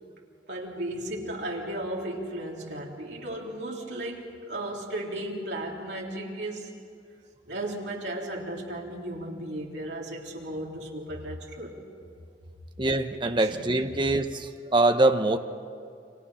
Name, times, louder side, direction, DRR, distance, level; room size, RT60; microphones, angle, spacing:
voice 1, 0.5-6.7 7.5-11.7 13.4-13.6, right 1 dB, 70° right, -2 dB, 3.6 m, -35 dB
voice 2, 12.8-15.4, right 2 dB, 25° right, 7 dB, 1.0 m, -24 dB
30.0 x 25.0 x 5.7 m, 2.3 s
head